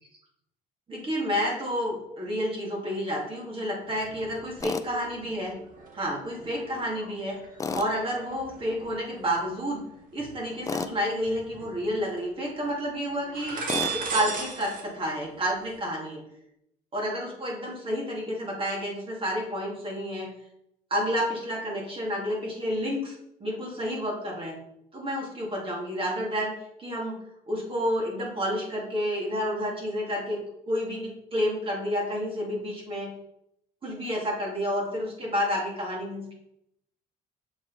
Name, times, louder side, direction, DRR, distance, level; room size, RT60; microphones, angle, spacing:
voice 1, 0.9-5.6 5.9-7.4 7.7-9.8 10.1-13.6 13.9-16.2 16.9-20.3 20.9-24.6 24.9-26.5 26.8-27.2 27.5-30.4 30.7-33.1 33.8-36.3, equal, 30° right, -2 dB, 2.3 m, -30 dB
interior sala juegos, 3.8-4.7 5.0-10.7 11.2-12.2 12.5-12.7 13.2-14.8 15.1-15.8, right 5 dB, 55° right, 1.5 m, -38 dB
Tools, 4.6-4.9 7.6-7.9 10.7-10.9 13.7-14.0, left 4 dB, 20° left, 0.4 m, -30 dB
7.1 x 5.0 x 4.0 m, 0.78 s
cardioid pair, 110°, 17 cm